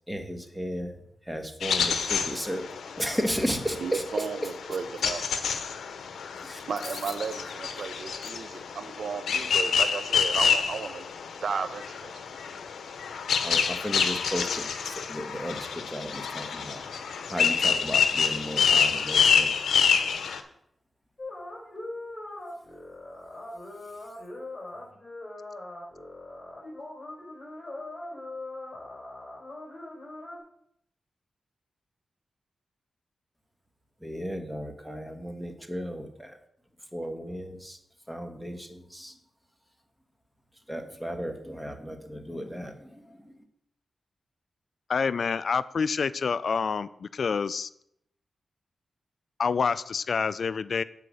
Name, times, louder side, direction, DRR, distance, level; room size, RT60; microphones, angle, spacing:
voice 1, 0.1-0.9 1.3-2.7 2.9-4.0 6.4-6.6 13.4-16.8 17.3-19.5 34.0-36.3 36.9-37.8 38.1-39.1 40.7-43.0, equal, 5° right, 5 dB, 1.6 m, -34 dB
sound 1, 1.6-20.4, left 6 dB, 85° left, 0.7 m, -27 dB
voice 2, 3.7-5.3 6.7-11.1 11.4-12.2, right 5 dB, 75° right, 11 dB, 0.5 m, -34 dB
sound 2, 21.2-30.4, left 2 dB, 30° left, 4.0 m, -41 dB
voice 3, 44.9-47.7 49.4-50.8, left 5 dB, 70° left, 16 dB, 0.3 m, -27 dB
8.5 x 4.9 x 6.3 m, 0.73 s
cardioid pair, 50°, 0 cm